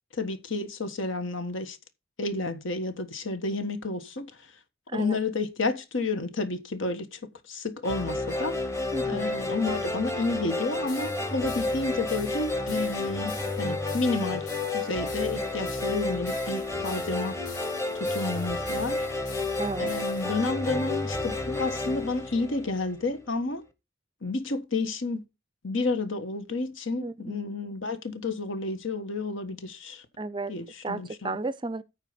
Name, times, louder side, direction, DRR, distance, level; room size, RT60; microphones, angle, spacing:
voice 1, 0.1-1.8 2.2-4.5 4.9-7.2 7.5-8.6 9.1-17.4 17.9-19.1 19.8-23.6 24.2-25.2 25.6-30.0 30.5-31.4, left 3 dB, 70° left, 1.5 m, -31 dB
voice 2, 4.9-5.2 8.9-9.4 19.6-19.9 27.0-27.4 30.2-30.5 30.8-31.8, right 3 dB, 25° right, 0.5 m, -33 dB
sound 1, 7.8-23.1, left 2 dB, 15° left, 1.0 m, -31 dB
sound 2, 10.9-20.4, left 6 dB, 45° left, 7.0 m, -47 dB
13.0 x 4.7 x 5.1 m
head